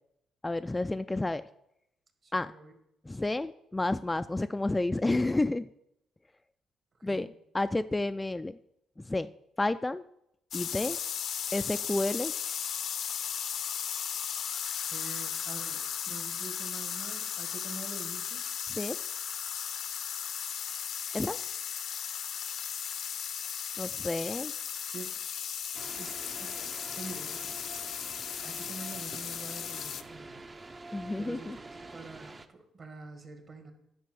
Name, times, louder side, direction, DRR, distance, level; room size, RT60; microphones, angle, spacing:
voice 1, 0.4-1.4 2.3-2.5 3.0-5.7 7.0-8.6 9.0-9.3 9.6-10.0 10.5-11.0 11.5-12.3 18.7-19.0 21.1-21.4 23.8-24.5 30.9-31.6, left 2 dB, 15° left, 11 dB, 0.3 m, -30 dB
voice 2, 2.2-2.7 7.0-7.3 14.8-18.4 24.8-25.1 26.0-27.8 28.4-30.5 31.2-33.7, right 3 dB, 45° right, 6 dB, 1.9 m, -46 dB
sound 1, 10.5-30.0, left 8 dB, 65° left, 0.6 m, -36 dB
sound 2, 25.7-32.5, right 2 dB, 30° right, 0.7 m, -46 dB
10.5 x 4.5 x 7.6 m, 0.79 s
cardioid pair, 90°, 0 cm